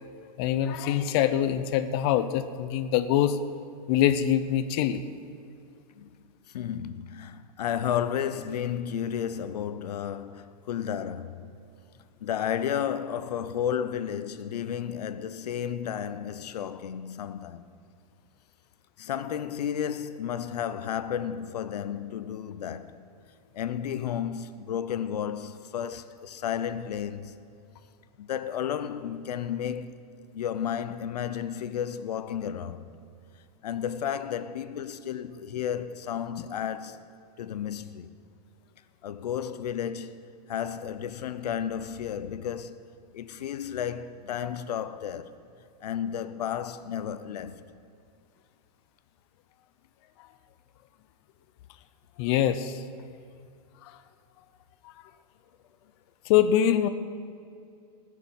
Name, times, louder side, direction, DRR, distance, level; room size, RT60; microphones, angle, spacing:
voice 1, 0.4-3.4 3.9-5.0 52.2-52.8 53.8-53.9 56.3-56.9, left 10 dB, 40° left, 0.7 m, -24 dB
voice 2, 6.5-11.6 12.2-17.6 19.0-23.0 23.5-27.4 28.2-30.0 30.3-32.9 33.6-37.0 37.4-38.1 39.0-42.8 43.1-45.3 45.8-47.6, left 9 dB, 85° left, 0.8 m, -32 dB
20.0 x 6.7 x 7.2 m
supercardioid pair, 155°, 20 cm